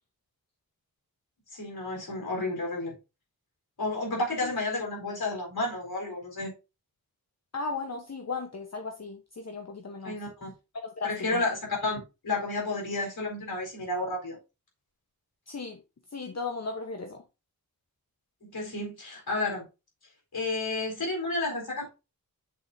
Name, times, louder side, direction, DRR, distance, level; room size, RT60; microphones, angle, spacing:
voice 1, 1.5-2.9 3.8-6.5 10.0-10.5 11.0-12.0 12.2-14.4 18.4-19.6 20.3-21.9, left 2 dB, 80° left, 4.3 m, -31 dB
voice 2, 7.5-10.2 10.8-11.4 15.5-15.8 16.1-17.2, left 4 dB, 45° left, 1.1 m, -36 dB
7.9 x 6.9 x 2.7 m
wide cardioid pair, 80°, 36 cm